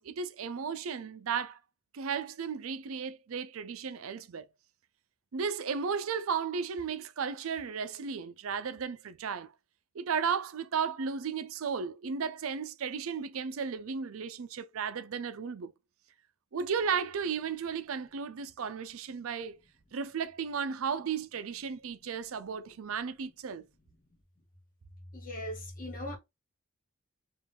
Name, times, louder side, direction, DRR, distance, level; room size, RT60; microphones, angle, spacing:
voice 1, 0.0-1.6 1.9-4.5 5.3-9.5 9.9-15.7 16.5-19.6 19.9-23.7, right 6 dB, 90° right, 0.5 m, -34 dB
voice 2, 25.1-26.2, left 1 dB, 40° left, 1.4 m, -39 dB
3.7 x 2.5 x 3.5 m
head